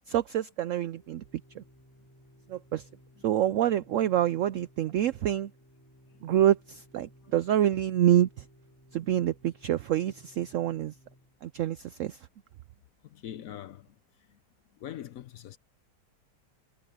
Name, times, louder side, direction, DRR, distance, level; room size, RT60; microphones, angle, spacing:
voice 1, 0.1-1.2 1.5-1.6 2.5-2.9 3.2-5.5 6.2-8.4 8.9-10.9 11.4-12.3, right 11 dB, 80° right, 0.6 m, -27 dB
Organ, 0.7-11.5, equal, 10° left, 5.7 m, -59 dB
voice 2, 13.0-13.9 14.8-15.6, left 11 dB, 65° left, 0.9 m, -42 dB
omnidirectional pair, 1.9 m